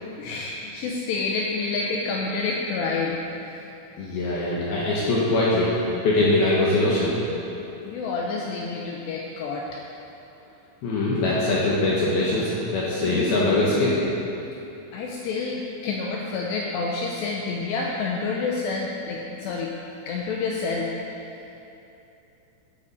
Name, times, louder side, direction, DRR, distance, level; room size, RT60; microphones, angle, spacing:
voice 1, 0.2-3.4 7.9-9.7 14.9-19.7 20.1-20.9, left 4 dB, 85° left, -2 dB, 2.5 m, -28 dB
voice 2, 4.0-5.7 6.0-7.3 10.8-14.0, left 2 dB, 70° left, -6 dB, 2.5 m, -22 dB
13.0 x 8.8 x 4.0 m, 2.9 s
omnidirectional pair, 5.7 m